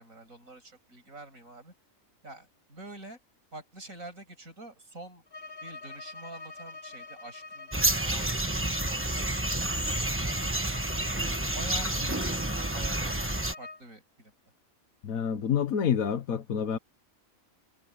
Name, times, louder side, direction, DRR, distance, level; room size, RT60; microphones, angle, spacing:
voice 1, 0.0-1.7 2.2-3.2 3.5-5.2 5.6-11.0 11.5-14.3, right 2 dB, 75° right, 8.0 m, -47 dB
Bowed string instrument, 5.3-13.9, left 3 dB, 40° left, 3.6 m, -45 dB
sound 1, 7.7-13.5, right 1 dB, 10° right, 1.1 m, -29 dB
voice 2, 15.0-16.8, left 8 dB, 85° left, 1.5 m, -28 dB
omnidirectional pair, 1.4 m